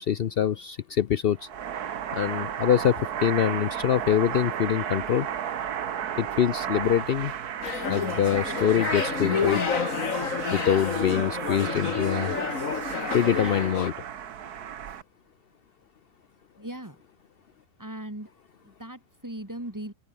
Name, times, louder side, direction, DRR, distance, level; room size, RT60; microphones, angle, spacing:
voice 1, 0.0-1.5 2.1-5.3 6.2-7.3 7.9-9.6 10.5-12.3 13.1-13.9, left 9 dB, 70° left, 0.5 m, -24 dB
sound 1, 1.4-15.0, right 9 dB, 70° right, 1.7 m, -33 dB
sound 2, 7.6-13.9, left 6 dB, 55° left, 2.0 m, -30 dB
voice 2, 16.6-17.0 17.8-18.3 18.6-19.9, right 1 dB, 10° right, 2.5 m, -38 dB
open air
omnidirectional pair, 1.8 m